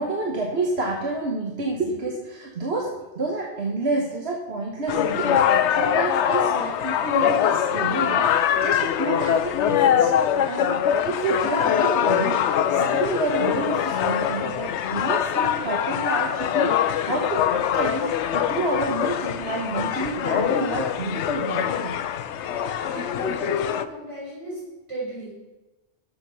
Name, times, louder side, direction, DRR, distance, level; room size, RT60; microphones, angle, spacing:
voice 1, 0.0-10.1 10.5-10.7 11.0-22.0, right 3 dB, 65° right, -1 dB, 1.6 m, -29 dB
sound 1, 4.9-23.9, left 9 dB, 80° left, 0.9 m, -23 dB
voice 2, 22.8-24.6 24.9-25.3, equal, 85° right, -5 dB, 5.0 m, -34 dB
12.0 x 7.4 x 5.7 m, 1.1 s
omnidirectional pair, 1.2 m